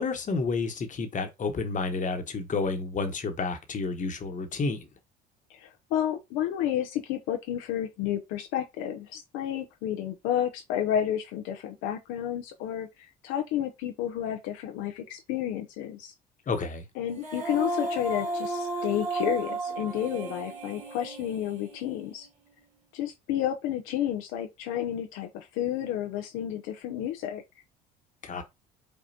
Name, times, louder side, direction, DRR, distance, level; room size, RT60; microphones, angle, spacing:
voice 1, 0.0-4.8 16.5-16.9 28.2-28.4, left 4 dB, 40° left, 1.2 m, -30 dB
voice 2, 5.5-16.1 17.0-22.3 22.9-27.4, left 11 dB, 75° left, 0.7 m, -31 dB
Female singing, 17.1-22.3, right 2 dB, 35° right, 2.3 m, -34 dB
5.3 x 2.4 x 2.8 m
supercardioid pair, 70°, 20 cm